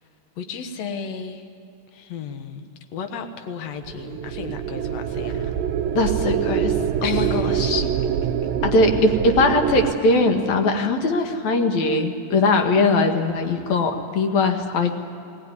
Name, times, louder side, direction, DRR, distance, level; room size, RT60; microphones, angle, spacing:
voice 1, 0.4-1.4 1.9-2.7 2.9-5.5 7.0-7.9, left 6 dB, 90° left, 6 dB, 1.5 m, -34 dB
sound 1, 3.8-9.9, right 9 dB, 75° right, 2.3 m, -25 dB
voice 2, 5.9-7.8 8.6-15.0, left 2 dB, 55° left, 5 dB, 2.2 m, -20 dB
20.5 x 19.0 x 9.6 m, 2.9 s
omnidirectional pair, 4.9 m